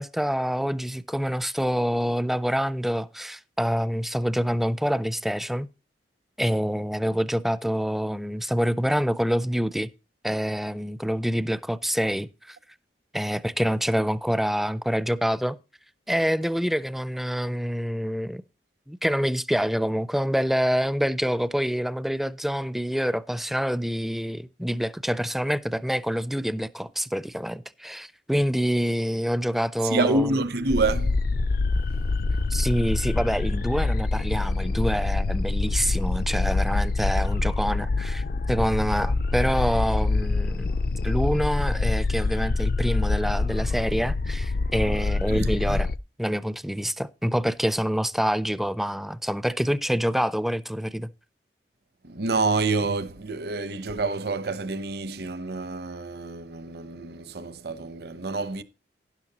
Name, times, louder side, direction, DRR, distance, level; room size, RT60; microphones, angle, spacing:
voice 1, 0.0-5.7 6.4-9.9 10.2-12.6 13.1-15.6 16.1-18.4 18.9-30.4 32.5-40.7 41.0-45.9 46.2-51.1, equal, ahead, 0.4 m, -26 dB
voice 2, 29.9-31.2 45.3-45.8 52.0-58.6, right 3 dB, 60° right, 0.8 m, -27 dB
sound 1, 30.7-46.0, left 3 dB, 55° left, 0.4 m, -25 dB
12.0 x 10.5 x 2.9 m
head